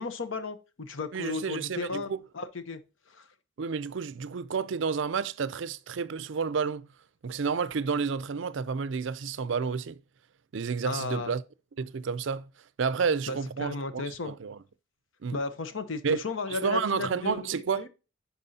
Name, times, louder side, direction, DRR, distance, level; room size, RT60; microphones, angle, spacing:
voice 1, 0.0-2.1 2.3-2.8 3.1-3.2 10.8-11.3 13.3-14.3 15.3-17.5 17.7-17.9, left 3 dB, 75° left, 0.9 m, -34 dB
voice 2, 1.1-2.2 3.6-6.9 7.2-10.0 10.5-11.4 11.8-12.5 12.8-14.6 15.2-15.4 16.0-17.9, right 5 dB, 65° right, 0.5 m, -30 dB
11.0 x 4.3 x 2.8 m
head